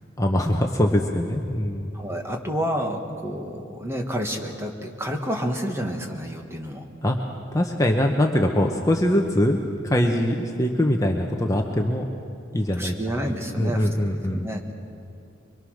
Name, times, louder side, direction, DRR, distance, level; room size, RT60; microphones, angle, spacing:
voice 1, 0.2-1.9 7.0-7.2 7.5-12.0 12.5-12.9 13.3-14.5, left 1 dB, 15° left, 2 dB, 1.0 m, -22 dB
voice 2, 1.9-6.9 12.8-13.9 14.3-14.7, equal, 15° right, 2 dB, 1.6 m, -29 dB
24.0 x 23.0 x 6.5 m, 2.5 s
head